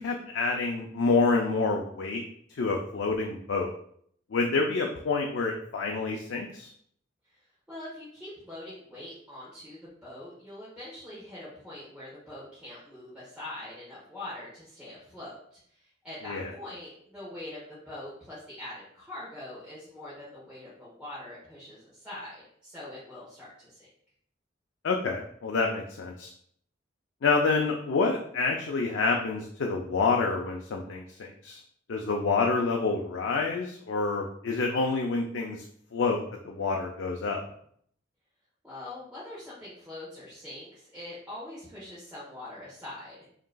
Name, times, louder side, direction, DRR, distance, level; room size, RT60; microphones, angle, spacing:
voice 1, 0.0-2.2 2.5-3.7 4.3-6.7 16.2-16.5 24.8-26.3 27.2-31.6 31.9-35.6 35.9-37.4, left 4 dB, 80° left, 1 dB, 0.5 m, -28 dB
voice 2, 7.7-23.9 38.6-43.3, left 1 dB, 5° right, -10 dB, 1.2 m, -43 dB
5.1 x 2.9 x 2.3 m, 0.65 s
head